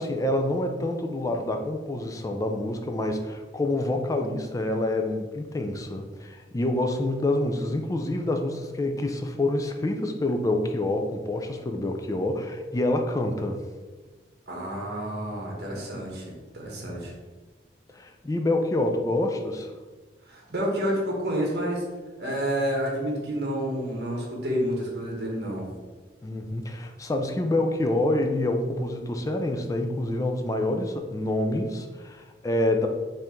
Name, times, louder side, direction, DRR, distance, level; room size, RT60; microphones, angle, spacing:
voice 1, 0.0-13.6 17.9-19.7 26.2-32.9, left 1 dB, 20° left, 4 dB, 0.3 m, -27 dB
voice 2, 14.5-17.1 20.3-21.8 22.2-25.7, equal, 60° right, -2 dB, 1.0 m, -29 dB
4.5 x 2.6 x 3.5 m, 1.3 s
head